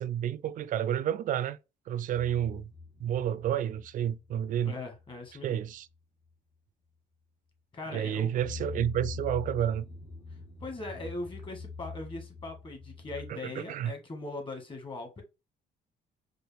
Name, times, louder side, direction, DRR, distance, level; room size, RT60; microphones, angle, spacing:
voice 1, 0.0-1.6 1.9-2.7 3.0-4.7 5.4-5.9 7.9-9.8 13.3-13.9, right 10 dB, 50° right, 0.4 m, -30 dB
sound 1, 2.1-4.7 5.0-5.3 5.6-5.7 8.2-13.3, left 4 dB, 80° left, 1.5 m, -43 dB
voice 2, 4.6-5.6 7.7-8.3 10.6-15.2, left 2 dB, 30° left, 1.5 m, -40 dB
4.6 x 2.5 x 3.3 m
cardioid pair, 110°, 17 cm